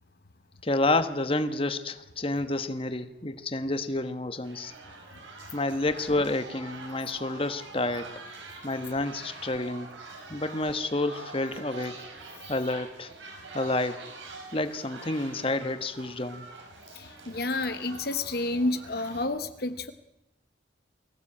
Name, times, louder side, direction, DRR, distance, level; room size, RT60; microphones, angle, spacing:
voice 1, 0.6-4.7 5.5-8.2 8.6-9.9 10.3-12.0 12.5-13.1 13.5-14.1 14.5-16.4, left 2 dB, 30° left, 10 dB, 1.3 m, -29 dB
sound 1, 4.4-19.3, right 3 dB, 85° right, 5.8 m, -45 dB
voice 2, 16.9-19.9, left 2 dB, 55° left, 10 dB, 1.0 m, -30 dB
23.5 x 16.0 x 8.7 m, 0.89 s
head